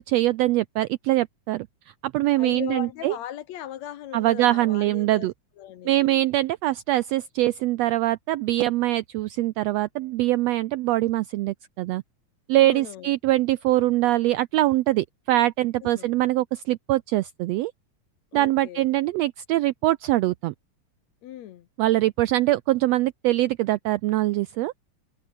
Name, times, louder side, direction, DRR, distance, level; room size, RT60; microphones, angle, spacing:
voice 1, 0.0-1.7 2.0-3.2 4.1-5.3 5.8-12.0 12.5-17.7 18.3-20.5 21.8-24.7, right 16 dB, 80° right, 1.5 m, -23 dB
voice 2, 2.4-5.3 5.6-6.3 12.6-13.1 15.8-16.1 18.3-18.9 21.2-21.7, left 11 dB, 70° left, 2.2 m, -38 dB
omnidirectional pair, 3.5 m